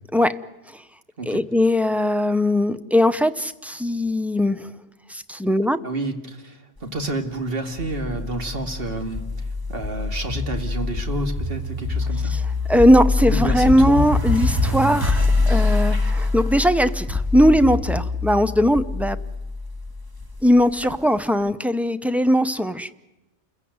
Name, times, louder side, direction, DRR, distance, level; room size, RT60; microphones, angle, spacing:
voice 1, 1.3-4.7 5.1-5.8 12.3-12.4 12.7-19.2 20.4-22.9, equal, ahead, 12 dB, 0.5 m, -19 dB
voice 2, 5.8-9.2 9.7-12.4 13.2-14.1 20.8-20.9, right 2 dB, 50° right, 5 dB, 2.4 m, -29 dB
sound 1, 7.8-21.0, left 3 dB, 15° right, 1.7 m, -24 dB
29.0 x 15.5 x 9.5 m, 1.0 s
omnidirectional pair, 1.3 m